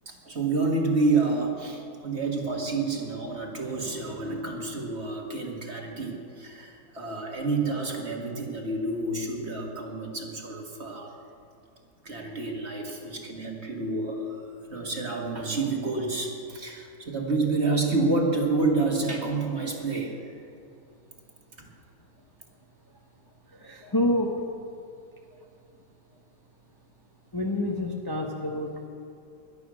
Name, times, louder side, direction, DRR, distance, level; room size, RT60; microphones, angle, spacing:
voice 1, 0.1-11.1 12.0-14.2 14.7-20.2 21.6-21.7, right 3 dB, 40° right, 1 dB, 2.1 m, -29 dB
voice 2, 23.5-24.4 25.3-25.4 27.3-28.9, left 1 dB, 15° left, 0 dB, 1.1 m, -28 dB
18.0 x 12.0 x 6.3 m, 2.5 s
omnidirectional pair, 1.8 m